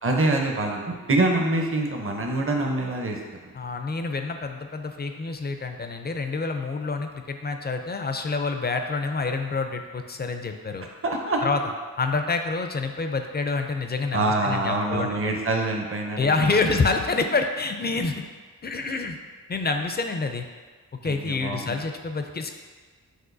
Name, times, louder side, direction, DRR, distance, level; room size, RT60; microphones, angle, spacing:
voice 1, 0.0-3.2 11.0-11.4 14.1-16.4 21.0-21.8, right 2 dB, 35° right, 1 dB, 0.6 m, -25 dB
voice 2, 3.5-10.9 11.4-11.6 12.0-15.3 16.2-18.2 18.6-19.2 19.5-20.5 21.0-22.5, left 4 dB, 30° left, 6 dB, 0.4 m, -27 dB
6.0 x 2.6 x 2.6 m, 1.4 s
cardioid pair, 40°, 36 cm